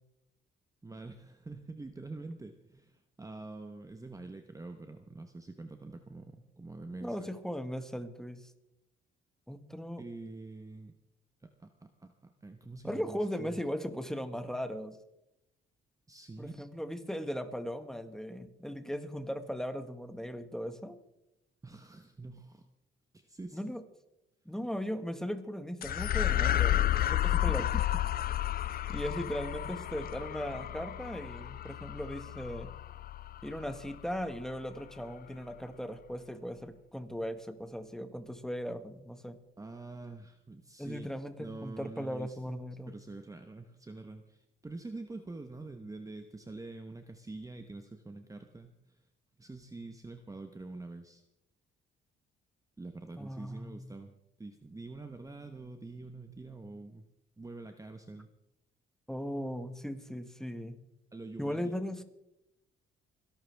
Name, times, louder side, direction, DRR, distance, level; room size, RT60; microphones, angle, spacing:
voice 1, 0.8-7.3 10.0-10.9 11.4-13.6 16.1-16.6 21.6-22.7 23.1-23.6 27.3-28.0 39.6-41.1 41.4-49.0 49.4-51.2 52.8-57.1 57.4-58.3 61.1-61.7, right 2 dB, 15° right, 7 dB, 1.0 m, -46 dB
voice 2, 7.0-8.5 9.5-10.0 12.8-15.0 16.4-21.0 23.5-23.8 24.4-26.8 27.1-27.6 28.9-32.7 33.4-39.4 40.8-42.9 53.2-53.9 59.1-60.8 61.4-62.0, equal, 5° left, 8 dB, 1.6 m, -38 dB
sound 1, 25.8-34.4, left 12 dB, 50° left, 0.4 m, -32 dB
27.5 x 11.5 x 3.5 m, 0.87 s
cardioid pair, 90°, 20 cm